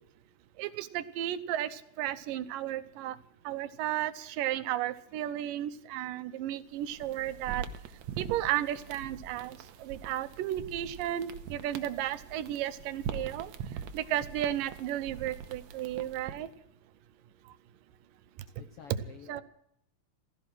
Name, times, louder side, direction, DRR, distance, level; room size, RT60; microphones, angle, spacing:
voice 1, 0.6-3.2 3.5-7.7 8.2-13.5 13.9-16.5 18.9-19.4, right 12 dB, 85° right, 14 dB, 2.5 m, -34 dB
sound 1, 6.7-16.5, right 7 dB, 70° right, 2.1 m, -43 dB
voice 2, 18.6-19.4, left 8 dB, 75° left, 7 dB, 1.3 m, -50 dB
15.5 x 14.5 x 6.2 m, 0.75 s
omnidirectional pair, 3.8 m